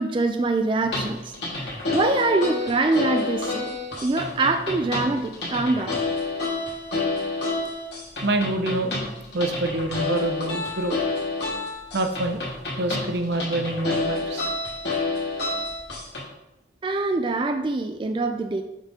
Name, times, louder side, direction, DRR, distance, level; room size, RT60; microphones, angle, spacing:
voice 1, 0.0-3.7 4.0-6.0 16.8-18.6, right 3 dB, 30° right, 6 dB, 0.3 m, -24 dB
sound 1, 0.8-16.2, left 3 dB, 80° left, 2.1 m, -29 dB
voice 2, 8.2-8.9 9.3-11.0 11.9-12.5 12.8-14.5, right 2 dB, 85° right, 5 dB, 0.7 m, -26 dB
6.5 x 5.1 x 3.6 m, 0.90 s
head